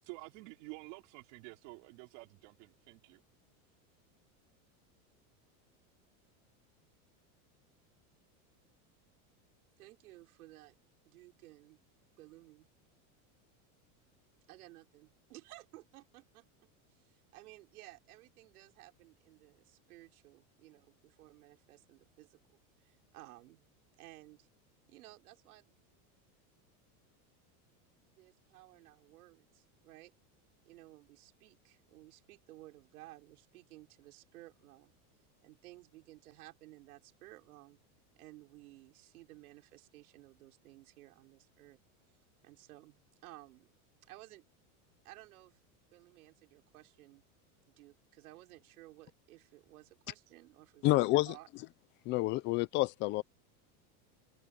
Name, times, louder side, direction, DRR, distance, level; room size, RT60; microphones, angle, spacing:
voice 1, 0.0-3.2, right 28 dB, 55° right, 4.1 m, -50 dB
voice 2, 9.8-10.7 11.1-11.8 12.2-12.7 14.5-23.7 24.0-24.5 24.9-25.7 28.0-30.1 30.7-34.9 35.4-37.8 38.2-41.8 42.4-43.7 44.0-44.4 45.0-45.6 45.9-47.2 47.7-51.5, right 18 dB, 85° right, 5.4 m, -56 dB
voice 3, 50.8-51.3 52.1-53.2, left 18 dB, 30° left, 0.4 m, -28 dB
supercardioid pair, 160°, 42 cm